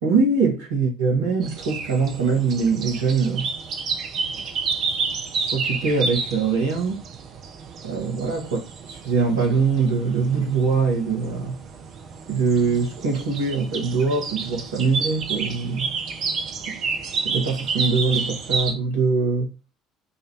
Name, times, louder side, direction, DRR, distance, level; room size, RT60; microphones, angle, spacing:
voice 1, 0.0-3.5 5.3-7.0 7.8-8.6 8.9-11.6 12.3-15.9 16.7-16.8 17.2-19.5, right 4 dB, 75° right, 1.4 m, -23 dB
sound 1, 1.4-18.7, right 5 dB, 50° right, 0.7 m, -30 dB
4.0 x 2.6 x 4.5 m
figure-of-eight pair, 60°, 0 cm